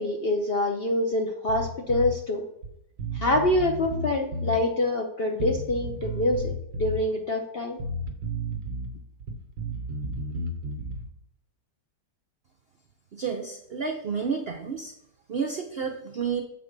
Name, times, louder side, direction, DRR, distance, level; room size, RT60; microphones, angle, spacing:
voice 1, 0.0-2.5 3.1-7.8, left 1 dB, 55° left, 3 dB, 0.6 m, -26 dB
Bass guitar, 1.5-2.1 2.6-2.7 3.0-4.6 5.4-7.0 7.8-8.9 9.2-11.1, equal, 65° right, 1.4 m, -32 dB
voice 2, 13.1-14.9 15.3-16.4, right 6 dB, 85° right, 4 dB, 0.5 m, -30 dB
7.1 x 4.7 x 5.2 m, 0.77 s
omnidirectional pair, 1.9 m